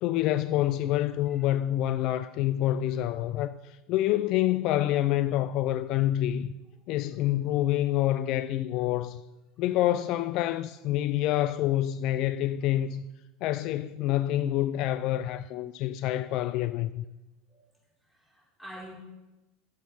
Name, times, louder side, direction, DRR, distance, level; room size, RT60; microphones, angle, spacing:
voice 1, 0.0-6.5 6.9-9.2 9.6-13.1 13.4-17.0, left 13 dB, 60° left, 0.4 m, -27 dB
voice 2, 2.0-2.3 2.9-3.1 12.4-12.8 17.5-17.6 18.0-18.9, equal, 5° left, 4.4 m, -49 dB
10.5 x 7.2 x 5.5 m
supercardioid pair, 100°, 0 cm